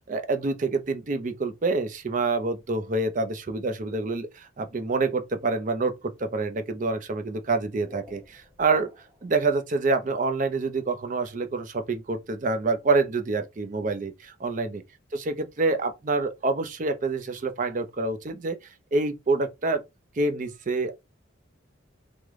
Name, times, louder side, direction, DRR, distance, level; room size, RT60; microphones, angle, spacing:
voice 1, 0.1-8.9 9.2-14.8 15.1-18.6 18.9-19.8 20.2-20.9, right 3 dB, 40° right, 0.5 m, -27 dB
sound 1, 7.4-9.3, left 2 dB, 10° right, 0.8 m, -45 dB
3.2 x 2.1 x 3.5 m
head